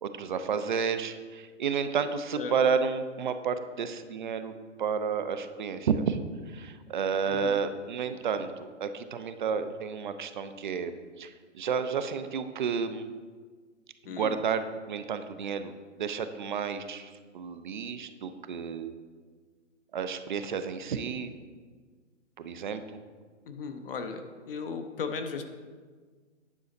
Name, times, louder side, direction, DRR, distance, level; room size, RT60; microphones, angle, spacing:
voice 1, 0.0-4.5 4.8-13.1 14.1-15.7 16.0-18.9 19.9-21.4 22.4-23.0, right 6 dB, 40° right, 10 dB, 0.5 m, -31 dB
voice 2, 23.5-24.2 24.5-25.4, left 5 dB, 50° left, 6 dB, 0.8 m, -36 dB
9.7 x 5.6 x 4.0 m, 1.5 s
figure-of-eight pair, 135°, 37 cm